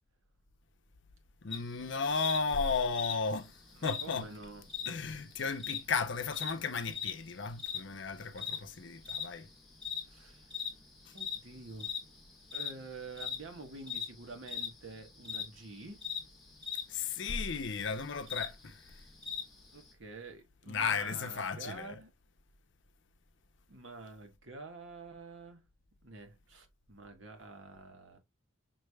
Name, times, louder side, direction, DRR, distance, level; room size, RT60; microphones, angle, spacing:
voice 1, 1.4-3.5 3.8-4.3 4.9-9.5 16.9-18.7 20.7-21.9, left 5 dB, 60° left, 0.6 m, -34 dB
sound 1, 1.5-19.9, left 7 dB, ahead, 1.3 m, -42 dB
voice 2, 3.8-4.7 10.1-10.5 11.1-11.9 12.5-16.0 19.7-22.1 23.7-25.6 26.0-28.2, right 3 dB, 70° right, 1.2 m, -48 dB
5.9 x 3.3 x 2.2 m
head